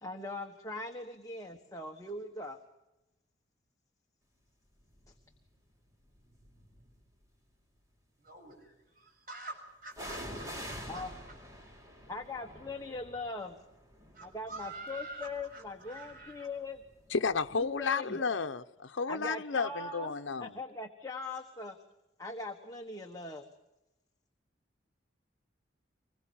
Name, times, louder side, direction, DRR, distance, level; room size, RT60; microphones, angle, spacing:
voice 1, 0.0-2.6 10.9-11.1 12.1-13.6 14.2-16.8 17.6-18.2 19.1-20.1 20.4-21.8 22.2-23.5, left 2 dB, 20° left, 1.4 m, -41 dB
sound 1, 5.0-5.3 6.1-7.0 9.9-17.6 17.8-17.9, equal, 15° right, 3.6 m, -47 dB
voice 2, 8.2-11.1 14.1-16.5, right 2 dB, 45° right, 7.2 m, -47 dB
voice 3, 17.1-20.6, left 4 dB, 80° left, 0.8 m, -32 dB
25.5 x 21.5 x 7.3 m
head